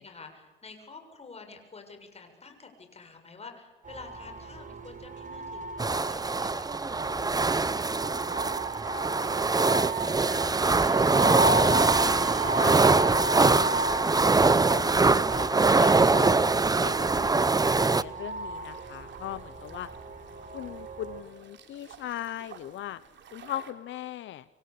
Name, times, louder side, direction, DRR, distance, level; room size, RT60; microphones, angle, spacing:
voice 1, 0.0-6.7, left 4 dB, 30° left, 5 dB, 7.2 m, -48 dB
sound 1, 3.8-21.2, right 2 dB, 40° right, 6.2 m, -34 dB
sound 2, 5.8-18.0, right 3 dB, 20° right, 0.9 m, -23 dB
voice 2, 11.2-13.0 13.4-16.4 16.8-19.9 20.5-23.0 23.3-24.4, left 12 dB, 75° left, 15 dB, 0.9 m, -39 dB
sound 3, 17.4-23.7, right 8 dB, 65° right, 3.7 m, -52 dB
27.0 x 24.0 x 8.6 m, 1.4 s
cardioid pair, 90°, 20 cm